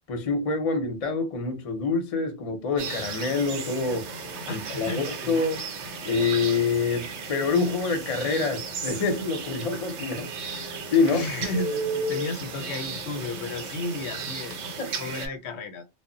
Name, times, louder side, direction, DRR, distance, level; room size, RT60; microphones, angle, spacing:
voice 1, 0.1-4.0 4.5-5.6 6.0-10.3 10.9-11.2 14.8-14.9, left 4 dB, 40° left, 0.6 m, -26 dB
sound 1, 2.8-15.3, right 3 dB, 90° right, 0.9 m, -34 dB
voice 2, 4.5-5.4 11.1-15.8, left 2 dB, 80° left, 0.9 m, -34 dB
2.0 x 2.0 x 3.7 m
omnidirectional pair, 1.1 m